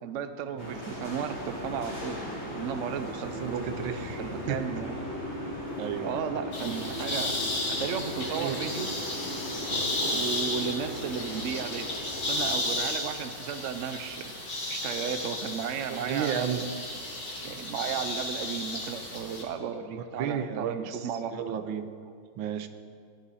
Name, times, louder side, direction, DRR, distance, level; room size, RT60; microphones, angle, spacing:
voice 1, 0.0-2.2 2.5-3.7 4.2-5.1 6.0-8.9 9.7-11.9 12.2-14.3 14.7-16.7 17.4-21.5, right 7 dB, 60° right, 10 dB, 0.8 m, -34 dB
sound 1, 0.6-12.6, equal, 10° left, 3.2 m, -37 dB
voice 2, 3.1-4.2 4.5-4.6 5.8-6.2 8.3-8.6 15.9-16.6 19.9-21.9 22.4-22.7, right 8 dB, 85° right, 9 dB, 1.6 m, -33 dB
sound 2, 6.5-19.4, left 2 dB, 60° left, 3.2 m, -34 dB
18.5 x 11.5 x 4.2 m, 2.2 s
omnidirectional pair, 2.1 m